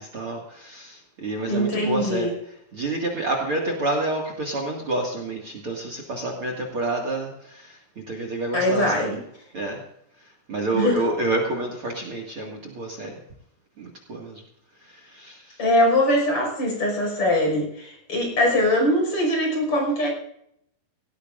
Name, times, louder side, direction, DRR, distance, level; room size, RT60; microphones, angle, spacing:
voice 1, 0.0-2.3 2.7-7.8 8.1-9.1 9.5-9.8 10.5-13.1 13.8-14.4 14.8-15.6, right 2 dB, 40° right, 1 dB, 2.5 m, -28 dB
voice 2, 1.5-2.3 8.5-9.2 10.7-11.0 15.6-20.1, left 1 dB, 40° left, 1 dB, 6.6 m, -22 dB
18.5 x 18.0 x 2.6 m, 0.74 s
omnidirectional pair, 4.1 m